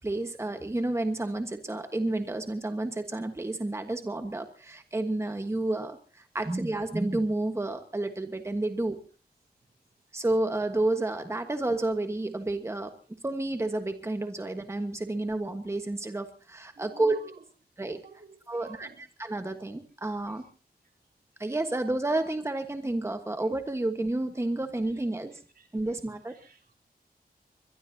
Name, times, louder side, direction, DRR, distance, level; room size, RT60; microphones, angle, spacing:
voice 1, 0.0-9.0 10.1-12.9 13.2-17.2 17.8-18.0 18.5-20.4 21.4-25.4 25.7-26.3, right 2 dB, 15° right, 6 dB, 1.4 m, -30 dB
voice 2, 16.8-17.4 18.0-19.0 25.6-25.7 26.3-26.8, right 5 dB, 70° right, 3 dB, 3.3 m, -52 dB
23.0 x 22.0 x 2.8 m, 0.37 s
wide cardioid pair, 115°, 16 cm